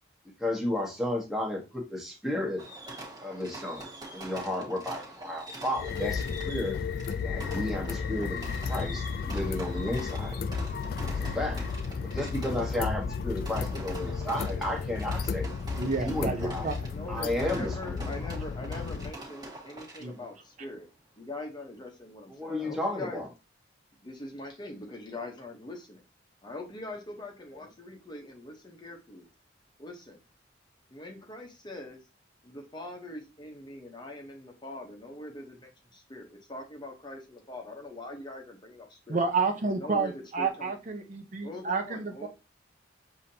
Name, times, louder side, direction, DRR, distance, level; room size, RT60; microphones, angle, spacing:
voice 1, 0.2-2.6 3.2-3.9 4.1-6.8 7.2-10.4 11.0-11.6 12.0-15.5 16.0-16.7 17.1-18.1 22.3-23.3, left 1 dB, ahead, -1 dB, 1.2 m, -33 dB
Fireworks, 2.6-20.3, right 2 dB, 20° right, 1.5 m, -45 dB
sound 1, 5.7-19.1, left 5 dB, 50° left, 0.3 m, -33 dB
voice 2, 15.8-16.7 20.0-20.1 39.1-42.3, right 4 dB, 40° right, 5 dB, 0.6 m, -30 dB
voice 3, 16.9-20.9 21.2-23.2 24.0-26.0 26.4-29.3 29.8-30.2 30.9-32.0 32.4-39.2 39.6-40.7 41.4-42.3, left 2 dB, 25° left, 1 dB, 0.9 m, -42 dB
7.0 x 2.8 x 2.7 m, 0.29 s
head